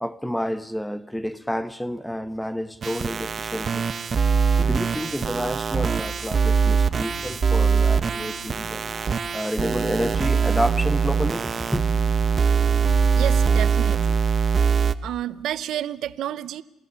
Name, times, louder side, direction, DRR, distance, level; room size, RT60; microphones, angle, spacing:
voice 1, 0.0-3.9 4.6-8.8 9.3-11.9, equal, 5° left, 0.9 m, -29 dB
sound 1, 2.8-14.9, right 6 dB, 35° right, 0.9 m, -22 dB
sound 2, 6.8-13.9, left 1 dB, 30° left, 3.8 m, -43 dB
voice 2, 13.1-14.2 15.0-16.6, right 11 dB, 70° right, 0.8 m, -30 dB
28.0 x 17.5 x 7.0 m
cardioid pair, 120°, 0 cm